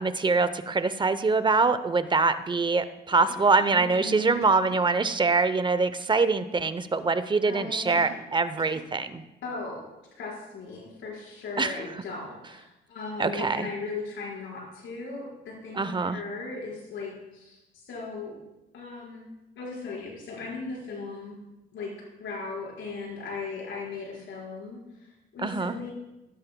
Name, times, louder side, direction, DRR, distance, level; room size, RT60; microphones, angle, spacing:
voice 1, 0.0-9.2 11.6-11.7 13.2-13.7 15.7-16.2 25.4-25.7, right 4 dB, 25° right, 12 dB, 0.7 m, -24 dB
Cough, 3.3-4.8 7.9-8.3 8.6-8.9, right 5 dB, 90° right, 1.8 m, -46 dB
voice 2, 3.7-4.5 7.4-8.0 9.4-9.9 10.2-18.4 18.7-19.3 19.6-21.3 21.7-21.9 22.2-25.9, left 3 dB, 75° left, -3 dB, 4.8 m, -37 dB
16.5 x 12.0 x 2.2 m, 0.99 s
cardioid pair, 90°, 20 cm